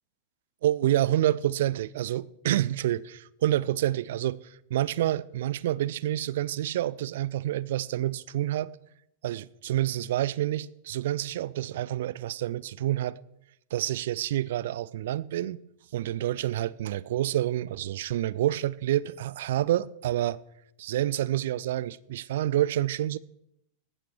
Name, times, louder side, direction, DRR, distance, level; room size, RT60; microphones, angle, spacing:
voice 1, 0.6-8.7 9.2-13.2 13.7-15.6 15.9-20.4 20.8-23.2, right 13 dB, 55° right, 0.4 m, -28 dB
18.0 x 14.5 x 3.2 m
figure-of-eight pair, 90°, 0 cm